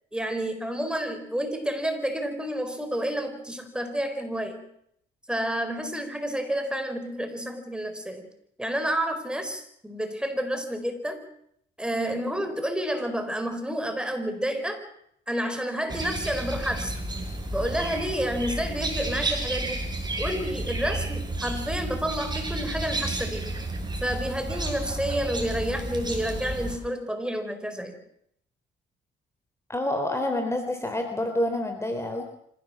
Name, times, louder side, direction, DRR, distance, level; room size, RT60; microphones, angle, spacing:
voice 1, 0.1-4.7 5.3-8.3 8.6-11.2 11.8-14.8 15.3-17.0 17.5-23.5 24.0-28.0, equal, 5° right, 7 dB, 4.5 m, -30 dB
sound 1, 15.9-26.8, right 2 dB, 20° right, 6.4 m, -31 dB
voice 2, 29.7-32.2, left 1 dB, 15° left, 6 dB, 3.6 m, -28 dB
26.0 x 16.5 x 7.4 m, 0.71 s
cardioid pair, 90°, 20 cm